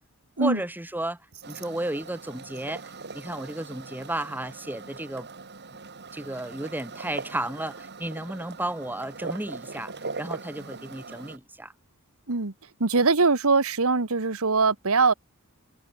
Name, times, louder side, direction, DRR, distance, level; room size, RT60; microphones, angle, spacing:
voice 1, 0.4-1.2 1.4-5.3 5.7-5.8 6.1-9.9 10.2-11.7, right 1 dB, 10° right, 1.5 m, -33 dB
sound 1, 1.4-11.4, right 4 dB, 50° right, 4.8 m, -40 dB
voice 2, 12.8-15.1, right 4 dB, 70° right, 1.5 m, -22 dB
head